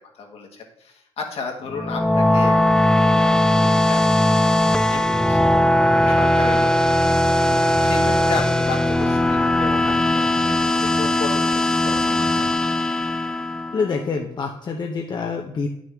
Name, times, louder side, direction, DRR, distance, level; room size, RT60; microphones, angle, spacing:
voice 1, 0.1-7.1 7.8-10.7 11.0-12.5, left 4 dB, 60° left, 1 dB, 1.7 m, -34 dB
sound 1, 1.7-14.1, left 1 dB, 5° left, 0.5 m, -19 dB
sound 2, 7.5-12.5, right 6 dB, 85° right, 0.7 m, -40 dB
voice 2, 13.7-15.7, left 4 dB, 40° left, 2 dB, 0.8 m, -26 dB
9.0 x 6.3 x 3.5 m, 0.81 s
cardioid pair, 85°, 11 cm